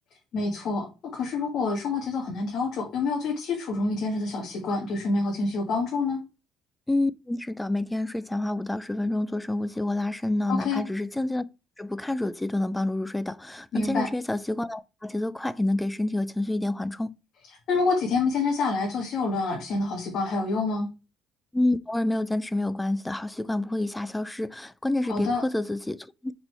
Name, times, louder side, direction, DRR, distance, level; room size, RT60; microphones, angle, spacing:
voice 1, 0.3-6.2 10.5-10.8 13.7-14.1 17.7-20.9 25.1-25.4, left 3 dB, 50° left, 1.7 m, -27 dB
voice 2, 6.9-11.4 11.8-17.2 21.5-26.3, left 2 dB, 5° left, 0.4 m, -28 dB
8.9 x 4.3 x 3.2 m
cardioid pair, 160°, 0 cm